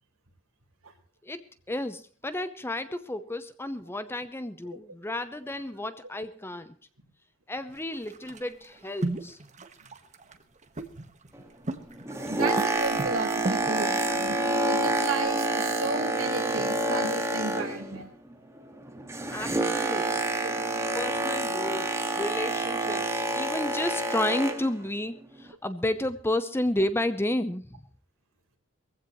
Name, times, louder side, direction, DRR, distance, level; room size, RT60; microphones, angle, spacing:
voice 1, 1.2-6.8 7.5-9.4 19.3-20.3 20.9-27.7, left 1 dB, 10° left, 11 dB, 0.8 m, -32 dB
sound 1, 7.7-16.7, right 2 dB, 35° right, 1.5 m, -38 dB
Boat Water vehicle, 11.9-18.0 18.3-24.8 25.4-25.5, right 2 dB, 15° right, 1.8 m, -28 dB
voice 2, 12.3-14.4 14.7-18.0 20.4-20.5, right 3 dB, 75° right, 2 dB, 4.3 m, -33 dB
21.0 x 15.5 x 3.1 m, 0.43 s
head